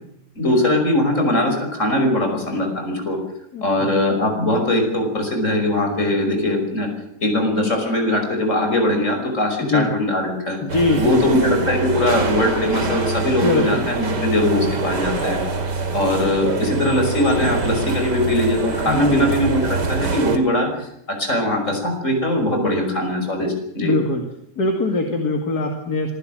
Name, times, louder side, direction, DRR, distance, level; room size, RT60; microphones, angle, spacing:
voice 1, 0.4-3.2 3.6-6.9 7.2-10.6 11.0-15.4 15.9-20.9 21.2-23.9, left 1 dB, 45° left, 3 dB, 6.0 m, -21 dB
voice 2, 3.5-3.9 9.6-9.9 10.6-11.5 13.4-13.9 18.9-19.3 23.8-24.2 24.6-26.1, left 2 dB, 65° left, 3 dB, 2.8 m, -22 dB
sound 1, 10.7-20.4, right 4 dB, 85° right, 2.9 m, -25 dB
25.5 x 16.0 x 7.7 m, 0.76 s
omnidirectional pair, 1.8 m